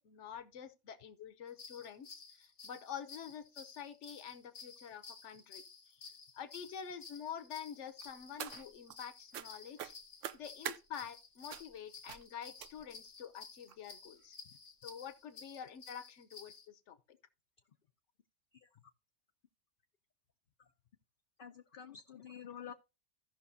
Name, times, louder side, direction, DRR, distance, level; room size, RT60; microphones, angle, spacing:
voice 1, 0.0-5.6 5.9-6.1 6.3-9.9 10.3-14.4 14.8-17.0, left 8 dB, 65° left, 1.2 m, -47 dB
sound 1, 1.5-16.7, left 5 dB, 90° left, 1.8 m, -54 dB
sound 2, 8.0-9.0 9.3-9.5 9.8-10.8 11.5-11.8 12.1-12.3 12.6-13.0 13.7-13.8 14.2-14.3 14.6-14.7, right 10 dB, 75° right, 1.0 m, -44 dB
voice 2, 21.4-22.7, left 8 dB, 50° left, 0.7 m, -48 dB
16.0 x 5.9 x 2.7 m
omnidirectional pair, 1.3 m